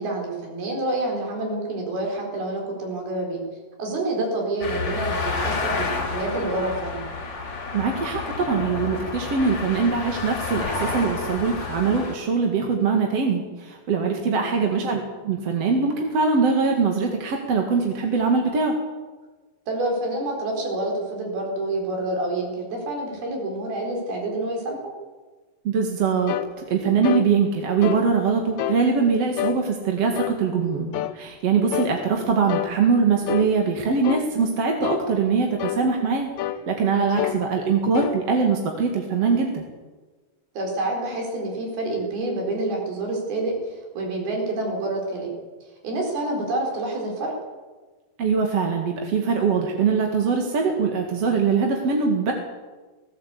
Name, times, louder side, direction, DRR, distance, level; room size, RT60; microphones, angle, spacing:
voice 1, 0.0-3.4 3.8-7.0 14.2-14.5 19.7-24.9 40.6-45.3 45.8-47.3, right 2 dB, 80° right, 1 dB, 6.3 m, -28 dB
sound 1, 4.6-12.1, left 4 dB, 45° left, 4.1 m, -30 dB
voice 2, 7.7-18.7 25.6-26.3 26.7-36.3 36.7-39.6 48.2-52.3, right 5 dB, 50° right, 2 dB, 2.6 m, -22 dB
sound 2, 26.3-26.5 27.0-27.3 27.8-28.1 28.6-28.8 29.4-29.6 30.2-30.4 30.9-31.2 31.7-31.9 32.5-32.7 33.3-33.5 34.0-34.3 34.8-35.1 35.6-35.8 36.4-36.6 37.2-37.4 37.9-38.2, left 12 dB, 75° left, 1.7 m, -27 dB
19.0 x 17.0 x 8.4 m, 1.3 s
omnidirectional pair, 4.3 m